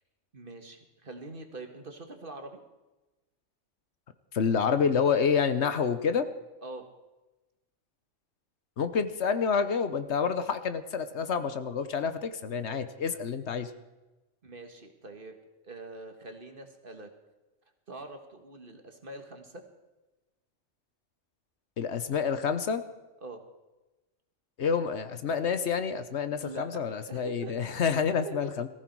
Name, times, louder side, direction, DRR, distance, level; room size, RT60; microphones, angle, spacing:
voice 1, 0.3-2.6 6.6-6.9 14.4-15.4 15.6-17.1 17.9-19.6 23.2-23.4 26.4-27.6 28.2-28.5, right 2 dB, 45° right, 5 dB, 1.9 m, -44 dB
voice 2, 4.3-6.3 8.8-13.7 21.8-22.8 24.6-28.7, left 6 dB, 65° left, 11 dB, 1.2 m, -28 dB
18.5 x 15.0 x 4.7 m, 1.1 s
omnidirectional pair, 1.2 m